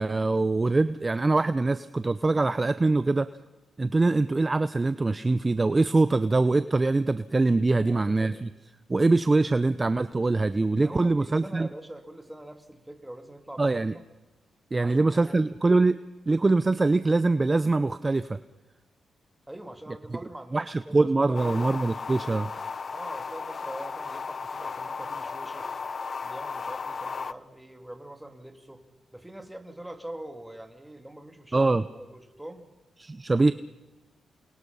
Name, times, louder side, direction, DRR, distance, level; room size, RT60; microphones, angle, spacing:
voice 1, 0.0-3.3 3.8-8.5 8.9-11.7 13.6-13.9 14.7-16.0 16.3-18.4 20.5-22.5 31.5-31.8 33.0-33.5, right 3 dB, 30° right, 13 dB, 0.7 m, -23 dB
voice 2, 7.8-8.4 10.8-14.0 14.8-15.5 19.5-21.7 22.9-25.7 26.2-28.8 29.1-32.7, right 1 dB, 10° right, 5 dB, 3.1 m, -43 dB
sound 1, 21.3-27.3, left 5 dB, 50° left, 0.7 m, -35 dB
28.5 x 24.0 x 5.6 m, 1.1 s
cardioid pair, 60°, 0 cm